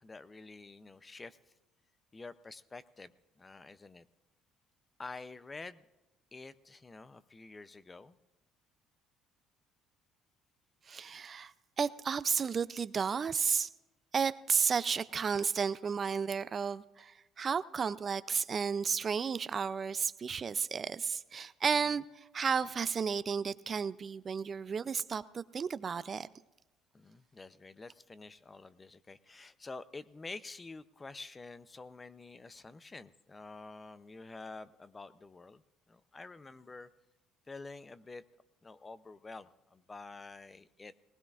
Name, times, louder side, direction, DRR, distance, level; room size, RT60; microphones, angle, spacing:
voice 1, 0.0-1.4 2.1-3.1 3.4-4.1 5.0-5.8 6.3-8.2 21.8-21.9 26.9-35.6 35.9-36.9 37.5-38.2 38.6-40.9, left 3 dB, 20° left, 15 dB, 0.5 m, -48 dB
voice 2, 10.9-11.5 11.8-13.7 14.1-26.3, right 6 dB, 35° right, 15 dB, 0.4 m, -33 dB
19.5 x 18.5 x 2.5 m, 1.1 s
supercardioid pair, 95°, 0 cm